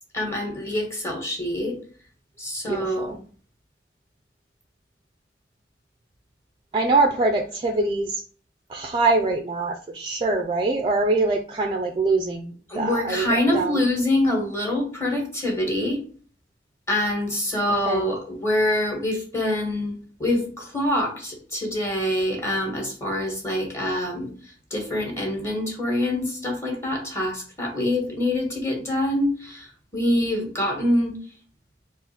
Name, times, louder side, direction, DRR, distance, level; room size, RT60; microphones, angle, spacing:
voice 1, 0.1-1.8 2.4-3.1 12.7-16.0 16.9-19.9 20.2-24.3 24.7-31.1, left 1 dB, 15° left, 1.2 m, -25 dB
voice 2, 2.6-3.2 6.7-8.2 8.7-13.8 17.9-18.1, right 3 dB, 25° right, 0.4 m, -24 dB
4.0 x 2.5 x 4.1 m
head